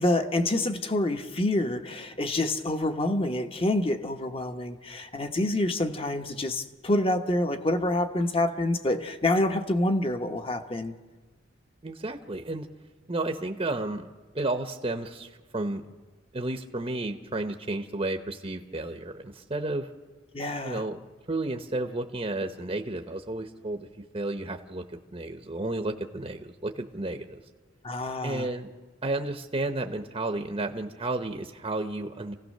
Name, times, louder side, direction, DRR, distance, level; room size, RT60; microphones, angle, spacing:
voice 1, 0.0-10.9 20.3-20.9 27.8-28.5, left 1 dB, 30° left, 7 dB, 1.0 m, -27 dB
voice 2, 11.8-12.7 13.1-14.1 14.3-15.8 16.3-19.9 20.6-21.0 21.3-23.9 24.1-27.4 28.2-28.7 29.0-32.3, right 2 dB, 30° right, 6 dB, 0.8 m, -32 dB
27.5 x 16.0 x 6.6 m, 1.4 s
head